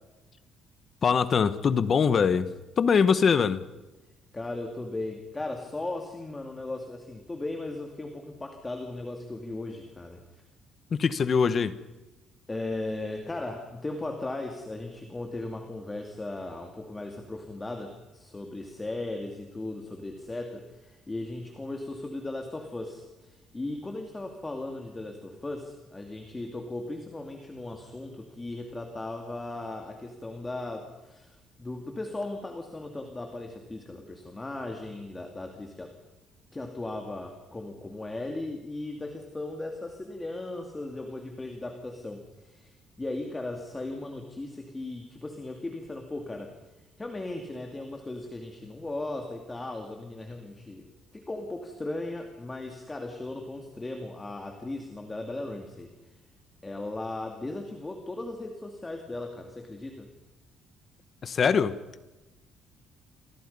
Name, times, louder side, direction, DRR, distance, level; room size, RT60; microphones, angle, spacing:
voice 1, 1.0-2.5 2.8-3.6 10.9-11.7 61.2-61.8, left 6 dB, 35° left, 14 dB, 1.1 m, -23 dB
voice 2, 4.3-10.2 12.5-35.9 36.5-46.5 47.0-50.9 51.1-55.9 56.6-60.1, left 2 dB, 15° left, 4 dB, 2.4 m, -37 dB
28.5 x 24.5 x 5.5 m, 1.1 s
cardioid pair, 145°, 0 cm